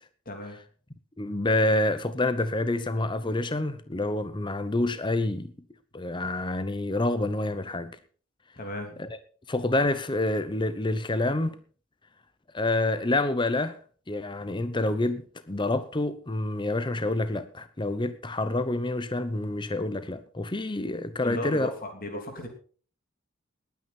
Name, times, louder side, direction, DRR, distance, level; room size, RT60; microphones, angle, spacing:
voice 1, 0.2-0.6 8.5-9.1 21.2-22.5, left 1 dB, 45° left, 3.1 m, -36 dB
voice 2, 1.2-5.5 5.9-8.0 9.0-9.1 9.5-11.6 12.5-13.8 14.1-21.7, left 2 dB, 25° left, 0.8 m, -27 dB
20.0 x 9.5 x 4.4 m
head